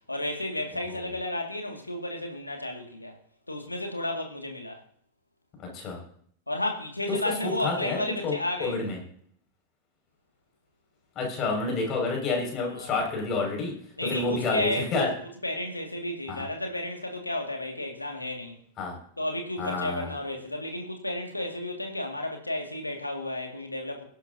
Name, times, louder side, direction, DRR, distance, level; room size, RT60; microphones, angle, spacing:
voice 1, 0.1-3.2 3.5-4.8 6.5-8.8 12.6-12.9 14.0-15.1 15.4-18.6 19.2-24.0, left 1 dB, 85° left, 2.3 m, -32 dB
voice 2, 7.1-8.0 8.2-9.0 11.2-13.7 14.0-15.1 16.3-16.4 18.8-19.0 19.6-20.1, left 3 dB, 35° left, 6.0 m, -29 dB
23.0 x 11.0 x 2.8 m
figure-of-eight pair, 90°, 0 cm